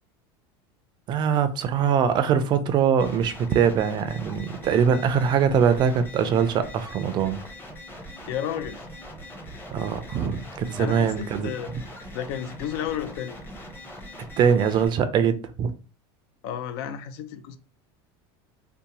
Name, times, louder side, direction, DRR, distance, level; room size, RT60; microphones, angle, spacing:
voice 1, 1.1-7.4 9.7-11.8 14.4-15.7, right 7 dB, 35° right, 0.4 m, -22 dB
sound 1, 3.0-14.9, equal, 15° left, 0.7 m, -41 dB
voice 2, 8.3-8.9 10.8-11.7 12.1-13.4 16.4-17.6, left 9 dB, 75° left, 0.4 m, -32 dB
2.7 x 2.1 x 2.9 m
supercardioid pair, 130°, 13 cm